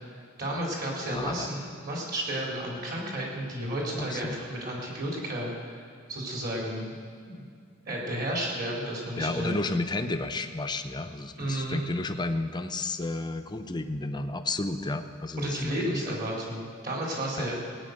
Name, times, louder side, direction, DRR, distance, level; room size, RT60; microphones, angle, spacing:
voice 1, 0.4-5.8 6.1-6.9 7.3-7.5 7.9-9.5 11.4-11.8 15.4-17.6, right 1 dB, 45° right, -2 dB, 4.0 m, -32 dB
voice 2, 1.1-1.5 4.1-4.4 9.2-16.0 17.4-17.5, left 2 dB, 20° left, 7 dB, 0.7 m, -32 dB
17.5 x 9.2 x 6.6 m, 2.2 s
head